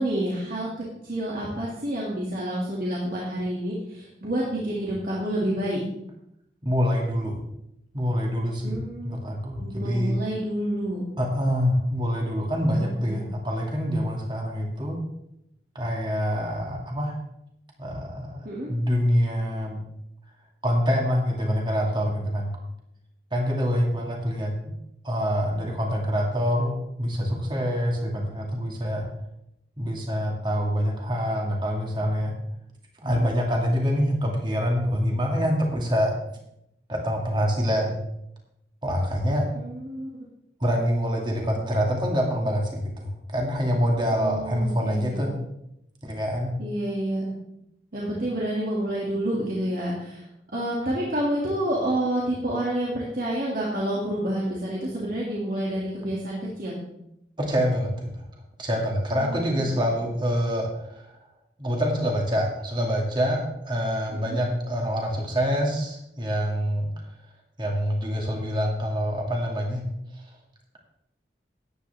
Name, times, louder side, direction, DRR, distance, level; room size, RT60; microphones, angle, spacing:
voice 1, 0.0-5.8 8.6-9.2 9.6-11.0 12.7-13.2 18.4-18.7 33.0-33.3 39.5-40.1 44.2-45.2 46.6-47.3 47.9-50.3 50.5-56.8 59.2-59.8 64.3-64.4, right 1 dB, 55° right, -5 dB, 2.3 m, -29 dB
voice 2, 6.6-7.4 7.9-8.8 9.0-10.2 11.2-15.0 15.7-17.2 17.8-19.8 20.6-22.6 23.3-24.7 25.0-29.0 29.8-32.4 33.0-36.2 36.9-38.0 38.8-39.5 40.6-45.3 46.0-46.5 57.4-58.3 58.6-61.1 61.6-66.9 67.6-69.8, equal, 25° right, 0 dB, 2.2 m, -26 dB
13.5 x 10.0 x 3.5 m, 0.81 s
head